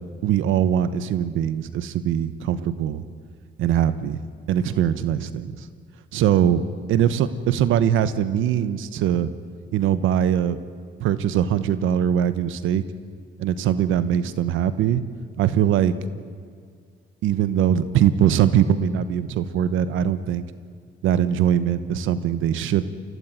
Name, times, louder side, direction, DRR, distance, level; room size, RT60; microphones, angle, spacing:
voice 1, 0.2-3.0 3.6-4.2 4.5-5.7 6.1-9.3 9.7-10.6 11.0-12.8 13.4-15.0 15.4-15.9 17.2-20.4 21.0-22.8, right 9 dB, 90° right, 14 dB, 1.1 m, -21 dB
25.0 x 17.0 x 9.1 m, 2.1 s
cardioid pair, 90°, 20 cm